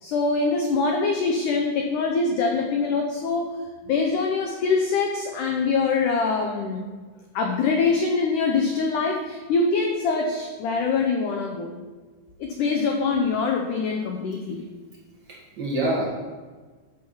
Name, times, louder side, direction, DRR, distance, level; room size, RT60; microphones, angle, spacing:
voice 1, 0.0-3.6 3.9-6.8 7.4-11.7 12.4-14.7, left 4 dB, 85° left, 2 dB, 1.8 m, -24 dB
voice 2, 15.3-16.1, right 1 dB, 35° right, -5 dB, 2.1 m, -27 dB
10.5 x 4.0 x 7.0 m, 1.4 s
omnidirectional pair, 4.6 m